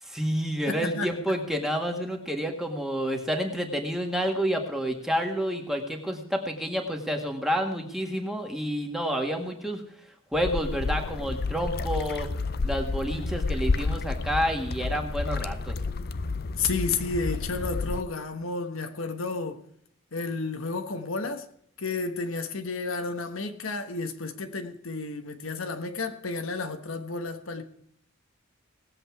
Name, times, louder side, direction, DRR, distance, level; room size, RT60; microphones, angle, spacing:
voice 1, 0.0-9.8 10.3-12.3 12.6-15.7, equal, ahead, 1.7 m, -29 dB
voice 2, 0.7-1.1 16.6-19.6 20.1-21.5 21.8-27.6, left 3 dB, 75° left, 1.2 m, -31 dB
sound 1, 10.3-18.0, left 3 dB, 50° left, 0.5 m, -30 dB
19.0 x 7.9 x 4.6 m
head